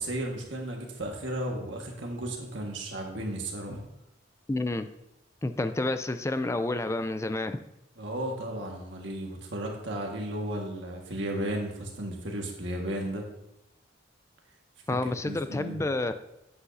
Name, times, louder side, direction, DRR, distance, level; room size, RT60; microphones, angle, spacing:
voice 1, 0.0-3.8 8.0-13.2 15.0-15.8, right 1 dB, 70° right, 1 dB, 1.6 m, -34 dB
voice 2, 4.5-4.9 5.4-7.6 14.9-16.1, left 2 dB, 15° left, 10 dB, 0.4 m, -29 dB
9.8 x 8.1 x 2.7 m, 0.87 s
head